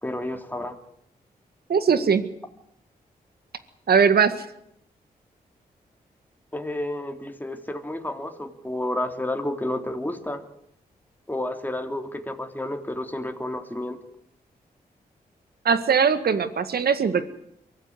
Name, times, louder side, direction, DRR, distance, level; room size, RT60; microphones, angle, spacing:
voice 1, 0.0-0.8 6.5-10.4 11.3-14.0, left 1 dB, 10° left, 5 dB, 3.4 m, -30 dB
voice 2, 1.7-2.2 3.9-4.3 15.7-17.3, right 6 dB, 70° right, 11 dB, 1.9 m, -20 dB
23.5 x 15.0 x 9.6 m, 0.75 s
supercardioid pair, 50°, 17 cm